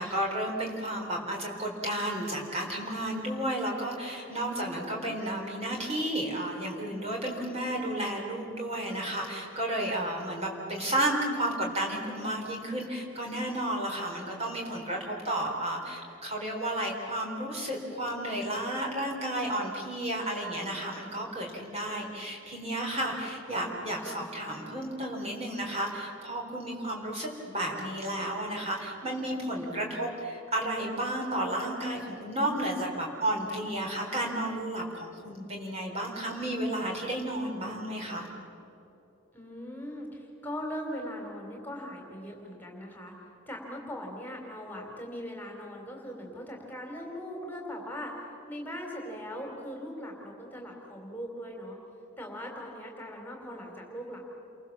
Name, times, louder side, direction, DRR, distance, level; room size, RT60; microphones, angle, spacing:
voice 1, 0.0-38.3, right 1 dB, 30° right, 0 dB, 4.1 m, -32 dB
voice 2, 4.6-5.1 24.0-24.3 29.4-30.0 39.3-43.1 43.5-48.2 48.5-51.8 52.2-54.3, equal, 10° left, 0 dB, 3.5 m, -40 dB
29.0 x 23.0 x 7.3 m, 2.9 s
head